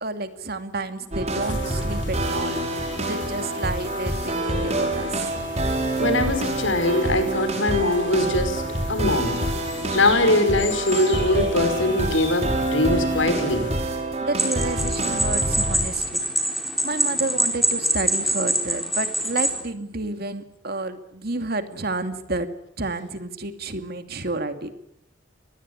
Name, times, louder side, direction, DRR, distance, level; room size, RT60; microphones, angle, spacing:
voice 1, 0.0-5.7 14.2-22.5 22.8-24.7, right 2 dB, 55° right, 9 dB, 2.5 m, -30 dB
sound 1, 1.1-16.1, right 1 dB, 35° right, 5.5 m, -27 dB
sound 2, 1.4-13.7, left 5 dB, 70° left, 5.5 m, -39 dB
voice 2, 6.0-9.5 9.9-13.7, left 1 dB, 90° left, 9 dB, 5.4 m, -22 dB
sound 3, 14.4-19.6, equal, ahead, 4.3 m, -24 dB
24.5 x 20.0 x 9.6 m, 0.76 s
head